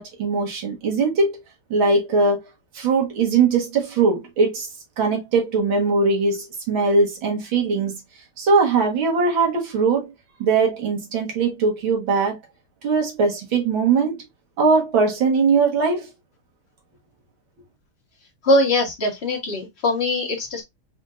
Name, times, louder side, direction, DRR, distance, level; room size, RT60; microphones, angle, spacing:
voice 1, 0.0-1.4 1.7-2.4 2.7-4.7 5.0-8.0 8.4-10.1 10.4-12.4 12.8-14.2 14.6-16.1, right 4 dB, 70° right, 2.3 m, -20 dB
voice 2, 18.4-20.6, left 1 dB, 30° left, 1.8 m, -21 dB
5.0 x 3.6 x 2.5 m
omnidirectional pair, 2.3 m